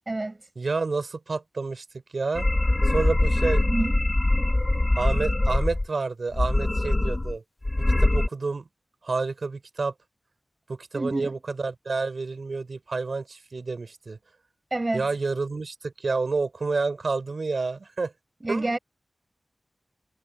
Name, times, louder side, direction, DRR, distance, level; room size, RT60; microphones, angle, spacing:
voice 1, 0.1-0.4 3.7-4.0 10.9-11.3 14.7-15.1 18.4-18.8, right 2 dB, 30° right, 7.4 m, -28 dB
voice 2, 0.6-1.8 2.1-2.5 2.8-3.6 5.0-7.4 8.0-8.7 9.0-9.9 10.7-14.2 14.9-18.1 18.5-18.7, right 3 dB, 65° right, 4.1 m, -29 dB
sound 1, 2.3-5.9 6.3-7.4 7.6-8.3, left 2 dB, 30° left, 2.4 m, -23 dB
wide cardioid pair, 95°, 0 cm